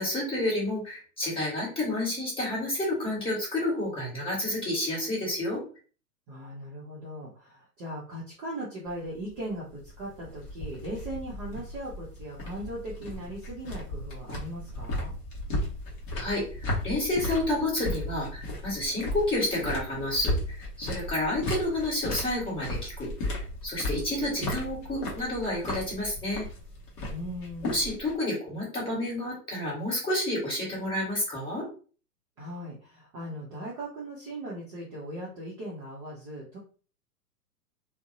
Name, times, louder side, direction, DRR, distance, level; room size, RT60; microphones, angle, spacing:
voice 1, 0.0-5.6 16.1-26.4 27.6-31.6, left 1 dB, 10° left, -6 dB, 1.1 m, -30 dB
voice 2, 6.3-15.1 27.1-27.8 32.4-36.6, right 1 dB, 25° right, -6 dB, 0.5 m, -39 dB
sound 1, 8.9-28.2, left 1 dB, 25° left, 0.7 m, -35 dB
2.5 x 2.0 x 2.5 m, 0.39 s
figure-of-eight pair, 110°, 48 cm